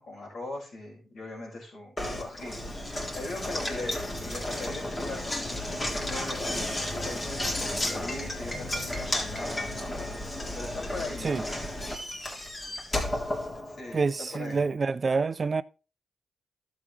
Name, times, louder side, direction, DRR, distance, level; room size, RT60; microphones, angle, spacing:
voice 1, 0.0-2.6 3.1-9.9 10.5-11.4 13.7-14.7, left 2 dB, 70° left, 5.7 m, -40 dB
Knock, 2.0-14.1, left 1 dB, 35° left, 3.5 m, -33 dB
voice 2, 13.9-15.6, right 4 dB, 50° right, 0.5 m, -27 dB
12.0 x 7.4 x 3.2 m
supercardioid pair, 50°, 0 cm